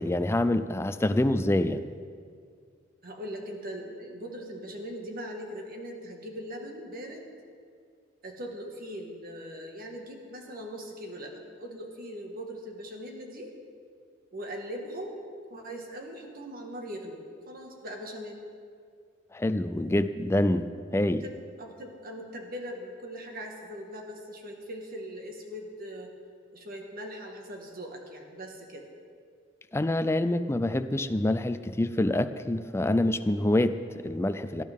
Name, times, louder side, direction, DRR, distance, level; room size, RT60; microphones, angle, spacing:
voice 1, 0.0-1.8 19.3-21.2 29.7-34.6, left 1 dB, 15° left, 11 dB, 0.4 m, -26 dB
voice 2, 3.0-7.3 8.2-13.5 14.3-15.2 15.5-17.2 17.5-18.4 21.2-26.1 26.5-28.9, equal, 50° right, 2 dB, 1.7 m, -40 dB
18.0 x 12.0 x 3.6 m, 2.2 s
head